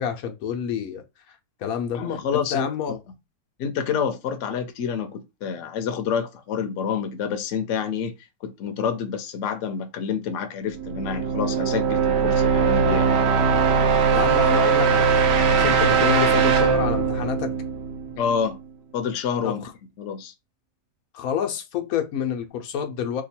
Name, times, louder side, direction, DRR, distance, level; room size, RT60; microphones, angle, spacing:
voice 1, 0.0-2.0 2.3-3.0 14.1-17.5 19.4-19.7 21.1-23.2, left 7 dB, 85° left, 1.1 m, -28 dB
voice 2, 1.9-3.0 3.6-8.2 8.4-13.1 18.2-18.6 18.9-19.7 20.0-20.3, left 7 dB, 65° left, 0.9 m, -28 dB
sound 1, 10.7-18.5, right 6 dB, 65° right, 0.7 m, -20 dB
2.9 x 2.3 x 4.2 m
omnidirectional pair, 1.5 m